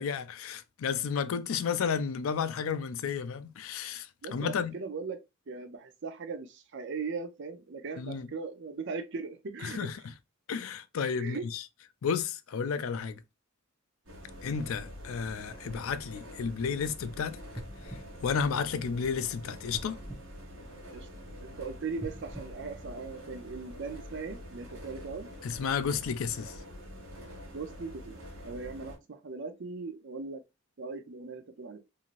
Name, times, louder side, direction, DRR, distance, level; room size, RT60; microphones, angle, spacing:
voice 1, 0.0-4.7 8.0-8.3 9.6-9.9 10.5-11.6 12.0-13.2 14.4-17.4 18.2-20.0 25.4-26.5, left 6 dB, 70° left, 0.4 m, -32 dB
voice 2, 4.2-9.9 11.2-11.5 18.8-18.9 20.9-21.1 21.4-25.3 27.5-30.4 30.8-31.8, right 4 dB, 60° right, 0.6 m, -39 dB
sound 1, 14.1-29.0, equal, 75° right, 1.1 m, -46 dB
sound 2, 17.5-19.2 19.7-21.3 21.9-23.6 24.1-24.2, equal, 5° left, 0.7 m, -46 dB
3.0 x 2.7 x 2.5 m
head